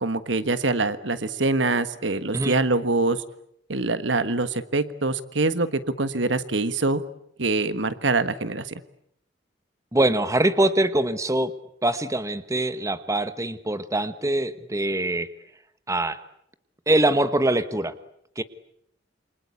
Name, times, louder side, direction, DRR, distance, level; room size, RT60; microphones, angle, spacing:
voice 1, 0.0-3.2 3.7-7.0 7.4-8.7, right 3 dB, 70° right, 12 dB, 1.5 m, -24 dB
voice 2, 9.9-11.5 11.8-15.3 15.9-16.2 16.9-17.9 18.4-18.5, right 1 dB, 15° right, 12 dB, 1.2 m, -23 dB
28.0 x 25.5 x 8.4 m, 0.73 s
head